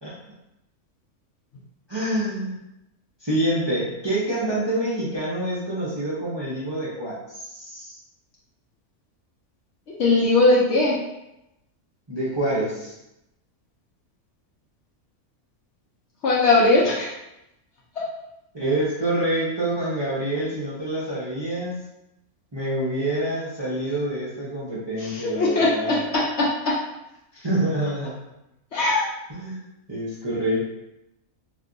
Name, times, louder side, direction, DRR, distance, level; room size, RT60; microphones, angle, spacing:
voice 1, 1.9-2.6 3.2-8.0 12.1-12.9 18.5-21.8 22.5-26.0 27.3-28.2 29.3-30.7, right 1 dB, 30° right, -9 dB, 0.5 m, -27 dB
voice 2, 10.0-11.0 16.2-17.1 18.0-18.1 25.0-26.8 28.7-29.1, left 2 dB, 65° left, -5 dB, 0.7 m, -20 dB
2.6 x 2.3 x 3.8 m, 0.89 s
omnidirectional pair, 1.5 m